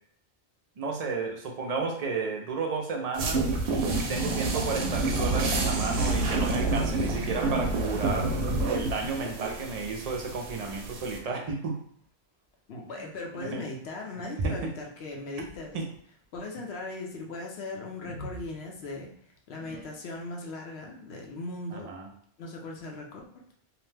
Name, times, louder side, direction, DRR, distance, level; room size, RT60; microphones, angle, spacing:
voice 1, 0.8-3.5 3.9-11.8 13.0-13.1 13.3-13.6 14.4-14.7 15.7-15.9 21.7-22.1, right 4 dB, 45° right, 1 dB, 0.5 m, -32 dB
sound 1, 3.1-11.2, right 2 dB, 85° right, 0.9 m, -28 dB
sound 2, 3.5-6.8 7.4-7.6 8.0-8.4 8.7-8.8 9.5-9.6 10.1-10.2 10.8-11.2 12.0-12.1 15.0-16.0 18.0-19.1 19.6-20.3, right 1 dB, 15° left, 0.7 m, -43 dB
voice 2, 12.7-15.8 16.3-19.1 19.5-22.0 22.4-23.4, left 2 dB, 75° left, 0 dB, 0.9 m, -38 dB
2.8 x 2.1 x 3.2 m, 0.62 s
omnidirectional pair, 1.1 m